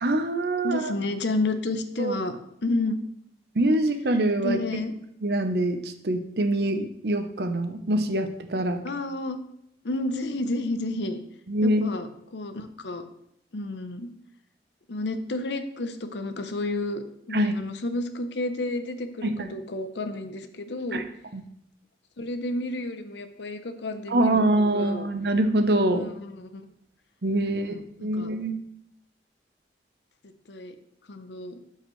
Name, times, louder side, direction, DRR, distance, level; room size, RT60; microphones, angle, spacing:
voice 1, 0.0-0.9 2.0-2.1 3.5-4.6 5.2-8.8 11.5-12.0 17.3-17.6 19.2-19.5 20.9-21.0 21.3-21.4 24.1-26.0 27.2-27.7 28.0-28.6, right 1 dB, 65° right, 7 dB, 0.8 m, -24 dB
voice 2, 0.6-2.9 4.4-4.9 8.8-9.4 9.8-11.2 11.6-13.1 13.5-14.1 14.9-21.0 22.2-25.1 25.9-26.6 27.5-28.3 30.5-30.8 31.1-31.6, left 2 dB, 80° left, 9 dB, 0.7 m, -31 dB
12.5 x 4.8 x 3.1 m, 0.74 s
head